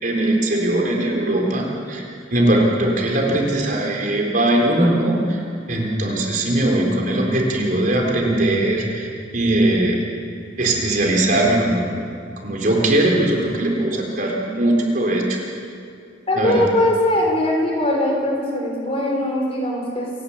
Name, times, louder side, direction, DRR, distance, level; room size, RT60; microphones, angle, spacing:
voice 1, 0.0-2.0 2.3-5.4 5.7-10.0 10.6-11.9 12.4-15.4 16.4-16.6, right 1 dB, 50° right, -1 dB, 4.3 m, -20 dB
voice 2, 16.3-20.1, left 1 dB, 35° left, -1 dB, 5.6 m, -20 dB
29.0 x 12.5 x 8.7 m, 2.4 s
head